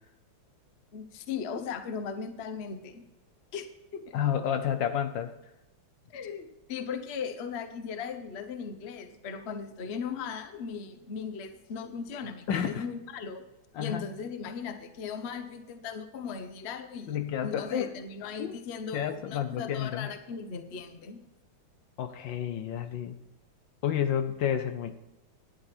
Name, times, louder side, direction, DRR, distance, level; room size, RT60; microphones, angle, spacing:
voice 1, 0.9-3.0 3.5-3.7 3.9-4.2 6.1-13.5 13.8-21.2, left 6 dB, 45° left, 9 dB, 0.9 m, -38 dB
voice 2, 4.1-5.3 12.5-12.8 13.7-14.0 17.1-17.9 18.4-18.6 18.9-20.1 22.0-23.2 23.8-24.9, left 9 dB, 70° left, 9 dB, 1.3 m, -30 dB
12.0 x 10.5 x 4.3 m, 0.95 s
omnidirectional pair, 2.2 m